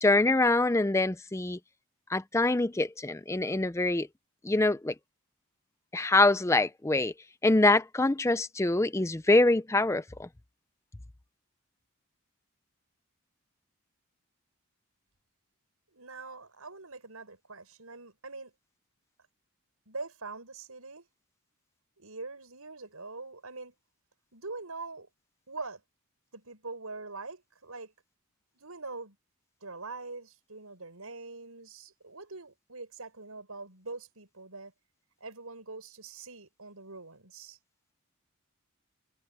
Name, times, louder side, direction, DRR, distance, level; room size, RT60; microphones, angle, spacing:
voice 1, 0.0-1.6 2.1-4.1 4.4-4.9 5.9-7.1 7.4-10.3, left 2 dB, 15° left, 0.5 m, -25 dB
voice 2, 15.9-18.5 19.9-21.1 22.0-23.7 24.3-25.1 25.5-25.8 26.3-27.9 28.5-29.2 29.6-34.7 35.2-37.6, right 3 dB, 85° right, 6.1 m, -43 dB
head